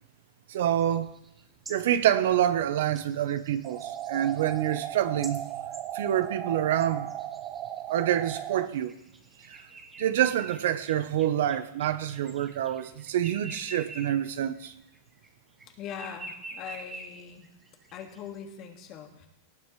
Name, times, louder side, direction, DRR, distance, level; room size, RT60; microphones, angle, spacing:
voice 1, 0.5-1.1 1.7-5.4 5.9-7.1 7.9-8.9 9.5-9.6 10.0-14.7, right 11 dB, 75° right, 11 dB, 0.9 m, -27 dB
sound 1, 0.8-6.4 6.8-14.3 14.5-15.6 15.9-18.4, right 2 dB, 15° right, 1.5 m, -47 dB
sound 2, 3.6-8.7, right 11 dB, 35° right, 0.6 m, -36 dB
voice 2, 15.8-17.5 17.9-19.3, left 8 dB, 40° left, 3 dB, 2.0 m, -41 dB
18.5 x 13.0 x 3.2 m, 0.83 s
supercardioid pair, 145°, 0 cm